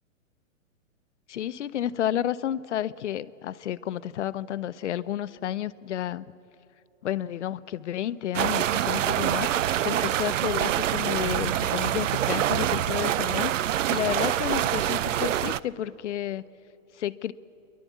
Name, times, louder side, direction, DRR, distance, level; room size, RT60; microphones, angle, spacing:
voice 1, 1.3-6.3 7.0-9.5 9.8-13.5 13.9-16.4 16.9-17.3, left 11 dB, 65° left, 15 dB, 0.7 m, -31 dB
sound 1, 8.3-15.6, right 11 dB, 70° right, 0.6 m, -26 dB
27.0 x 11.5 x 8.3 m, 2.7 s
hypercardioid pair, 165°, 39 cm